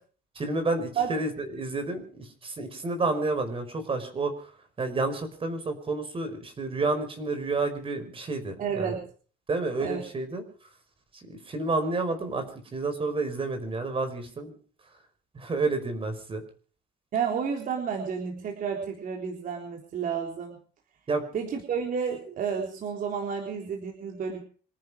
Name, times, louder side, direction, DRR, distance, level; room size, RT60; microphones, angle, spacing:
voice 1, 0.3-4.5 4.8-9.0 9.5-10.4 11.1-12.5 12.7-14.6 15.3-16.4 21.1-21.2, right 3 dB, 30° right, 9 dB, 5.0 m, -30 dB
voice 2, 8.6-9.0 9.8-10.0 17.1-20.6 21.3-24.4, right 7 dB, 55° right, 1 dB, 3.9 m, -31 dB
26.5 x 11.0 x 5.0 m, 0.43 s
cardioid pair, 110°, 17 cm